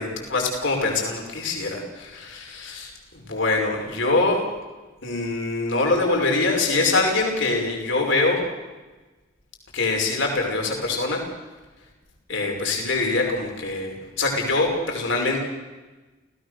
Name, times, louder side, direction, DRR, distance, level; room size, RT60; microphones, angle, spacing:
voice 1, 0.0-4.4 5.0-8.4 9.7-11.2 12.3-15.4, left 3 dB, 65° left, 1 dB, 5.7 m, -24 dB
29.5 x 17.5 x 6.6 m, 1.2 s
head